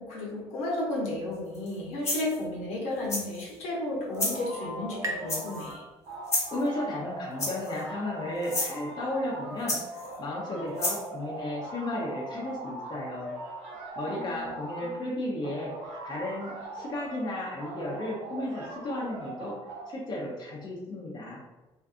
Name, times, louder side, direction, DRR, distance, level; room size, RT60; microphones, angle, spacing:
voice 1, 0.0-5.8 14.1-14.5 14.8-15.0, left 2 dB, 85° left, -4 dB, 0.9 m, -33 dB
sound 1, 1.5-1.7 2.0-2.4 3.1-3.5 4.1-4.4 5.3-5.7 6.3-6.6 7.4-7.8 8.4-8.7 9.7-10.1 10.8-11.0, left 1 dB, 25° left, 0.9 m, -30 dB
sound 2, 3.6-6.9, right 1 dB, 30° right, 0.5 m, -42 dB
sound 3, 4.1-5.8 6.0-15.0 15.4-17.2 17.6-19.9, right 2 dB, 80° right, 0.7 m, -40 dB
voice 2, 6.5-9.8 10.2-13.3 14.0-19.5 19.9-21.4, left 1 dB, 40° left, -3 dB, 0.6 m, -34 dB
2.6 x 2.3 x 2.4 m, 1.1 s
cardioid pair, 95°, 11 cm